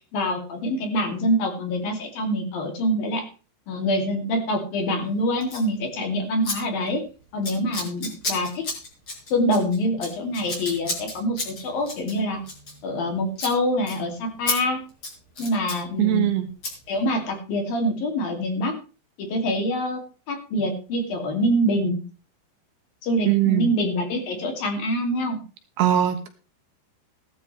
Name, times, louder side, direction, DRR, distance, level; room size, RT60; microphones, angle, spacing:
voice 1, 0.1-3.3 3.7-7.0 7.3-8.7 9.3-12.4 12.8-14.8 15.4-16.3 16.9-18.7 19.2-20.0 20.3-22.0 23.0-25.4, equal, 55° left, 3 dB, 4.1 m, -25 dB
Scissors, 5.4-5.7 6.4-6.6 6.8-7.1 7.4-13.1 13.3-13.5 13.9-14.0 14.5-14.6 14.9-15.8 16.6-16.7, left 2 dB, 30° left, 5.1 m, -32 dB
voice 2, 16.0-16.5 23.3-23.7 25.8-26.3, right 13 dB, 70° right, 7 dB, 3.1 m, -20 dB
17.0 x 13.0 x 3.3 m, 0.35 s
omnidirectional pair, 5.2 m